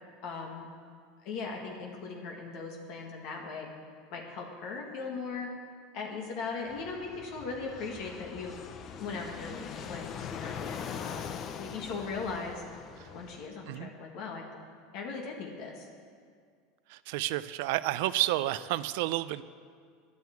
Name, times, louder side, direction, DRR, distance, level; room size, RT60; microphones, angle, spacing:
voice 1, 0.2-0.7 1.2-3.7 4.1-5.5 5.9-8.6 9.0-12.6 13.1-14.5 14.9-15.9, left 4 dB, 60° left, 1 dB, 1.8 m, -39 dB
Fixed-wing aircraft airplane, 6.7-13.5, left 7 dB, 40° left, 0.7 m, -42 dB
voice 2, 16.9-19.4, right 16 dB, 70° right, 15 dB, 0.4 m, -30 dB
10.0 x 9.4 x 8.3 m, 2.1 s
supercardioid pair, 120°, 0 cm